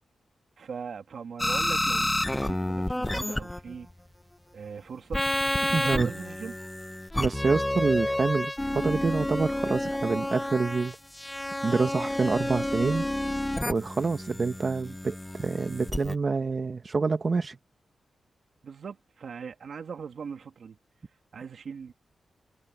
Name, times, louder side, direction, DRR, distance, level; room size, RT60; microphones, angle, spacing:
voice 1, 0.6-3.9 4.5-6.5 18.6-20.8 21.3-21.9, right 6 dB, 70° right, 2.6 m, -40 dB
sound 1, 1.4-3.9 5.1-16.1, left 1 dB, 10° left, 0.6 m, -30 dB
voice 2, 5.7-6.1 7.2-10.9 11.6-13.0 13.6-17.6, right 4 dB, 45° right, 1.1 m, -27 dB
cardioid pair, 85°, 0 cm